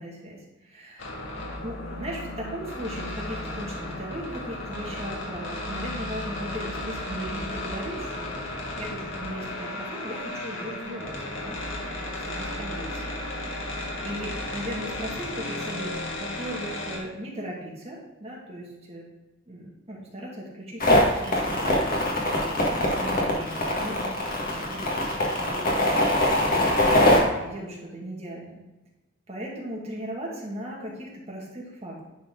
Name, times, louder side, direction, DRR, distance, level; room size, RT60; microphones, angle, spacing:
voice 1, 0.0-1.1 1.6-11.6 12.0-13.0 13.4-13.8 14.0-19.1 19.5-20.9 21.2-24.9 25.4-26.1 27.2-28.5 29.3-32.0, right 1 dB, 30° right, -4 dB, 1.9 m, -38 dB
sound 1, 1.0-17.0, left 1 dB, 70° left, 1.5 m, -34 dB
sound 2, 20.8-27.2, left 1 dB, 45° left, 1.7 m, -22 dB
10.5 x 4.3 x 3.7 m, 1.0 s
head